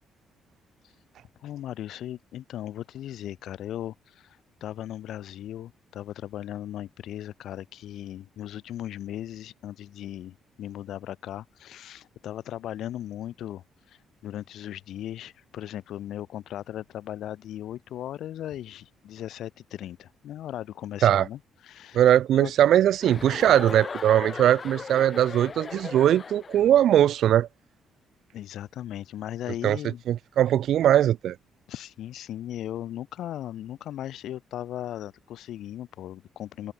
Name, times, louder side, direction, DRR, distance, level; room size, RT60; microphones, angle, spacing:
voice 1, 1.4-22.0 22.3-22.5 28.3-30.0 31.7-36.7, left 12 dB, 75° left, 2.5 m, -37 dB
voice 2, 21.9-27.5 29.6-29.8 30.1-31.4, right 11 dB, 75° right, 1.2 m, -20 dB
Chuckle chortle, 23.0-26.8, left 5 dB, 35° left, 1.1 m, -37 dB
cardioid pair, 90°, 0 cm